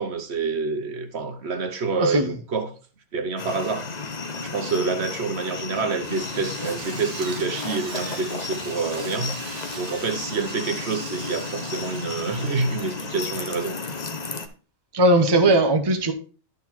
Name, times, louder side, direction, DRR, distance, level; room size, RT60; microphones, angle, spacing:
voice 1, 0.0-2.7 3.1-14.1, right 4 dB, 65° right, 1.2 m, -28 dB
voice 2, 2.0-2.3 14.9-16.1, right 1 dB, 25° right, 0.8 m, -18 dB
sound 1, 3.4-14.5, left 4 dB, 40° left, 0.8 m, -33 dB
Drill, 6.0-13.9, right 6 dB, 80° right, 1.3 m, -41 dB
12.5 x 4.1 x 4.4 m
omnidirectional pair, 1.2 m